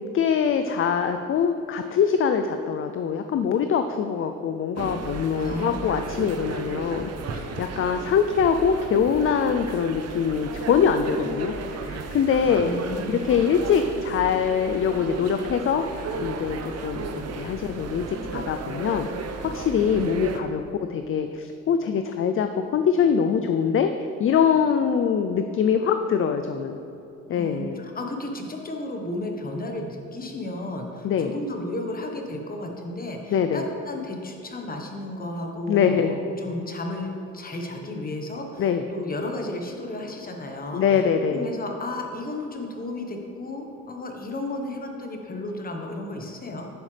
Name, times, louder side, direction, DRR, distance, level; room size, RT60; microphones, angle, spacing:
voice 1, 0.1-12.7 13.1-19.1 19.4-20.6 20.9-23.9 24.2-26.8 27.3-27.8 31.0-31.3 33.3-33.6 35.7-36.2 38.6-38.8 40.7-41.5, left 7 dB, 45° left, 8 dB, 0.5 m, -23 dB
sound 1, 4.8-20.4, right 4 dB, 55° right, 0.8 m, -35 dB
voice 2, 5.4-5.9 12.5-13.2 27.3-40.8 41.3-46.7, left 1 dB, 30° left, 2 dB, 1.3 m, -33 dB
10.5 x 7.2 x 3.4 m, 2.9 s
cardioid pair, 90°, 30 cm